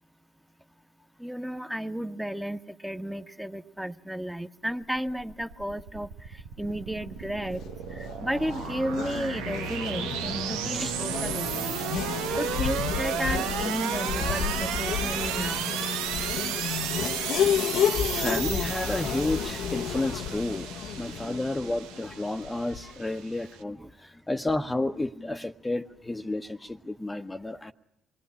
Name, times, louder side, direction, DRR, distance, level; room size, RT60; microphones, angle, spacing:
voice 1, 1.2-7.6 7.9-11.8 12.4-15.7 21.1-21.2 23.8-23.9, equal, 5° right, 7 dB, 1.5 m, -33 dB
sound 1, 4.8-23.6, right 9 dB, 80° right, 1.1 m, -34 dB
Race car auto racing / Accelerating revving vroom, 7.5-23.1, left 8 dB, 70° left, 1.0 m, -32 dB
voice 2, 18.1-20.7 21.0-27.7, left 2 dB, 15° left, 5 dB, 1.1 m, -31 dB
27.0 x 20.5 x 9.9 m, 0.85 s
hypercardioid pair, 50°, 0 cm